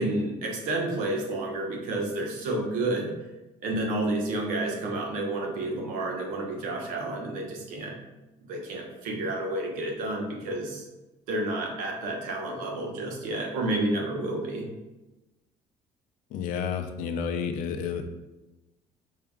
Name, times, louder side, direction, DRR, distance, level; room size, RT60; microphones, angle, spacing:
voice 1, 0.0-3.1 3.6-8.0 8.4-10.8 11.3-14.7, right 2 dB, 90° right, 0 dB, 0.9 m, -30 dB
voice 2, 16.3-18.0, left 7 dB, 85° left, 7 dB, 0.5 m, -30 dB
4.6 x 3.5 x 2.3 m, 1.0 s
cardioid pair, 170°, 13 cm